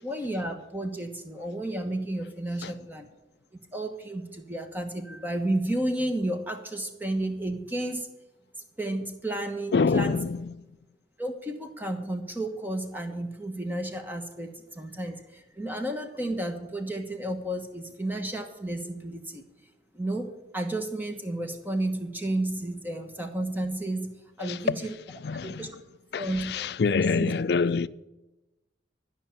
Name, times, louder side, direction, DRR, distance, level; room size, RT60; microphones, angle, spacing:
voice 1, 0.0-3.1 3.7-8.1 8.8-10.2 11.2-19.5 19.9-24.9 25.4-25.7 26.2-26.7 27.0-27.3, right 1 dB, 10° right, 1.1 m, -32 dB
voice 2, 9.7-10.7 24.4-24.8 25.2-25.7 26.1-27.9, left 4 dB, 65° left, 0.4 m, -26 dB
12.5 x 5.7 x 8.7 m
head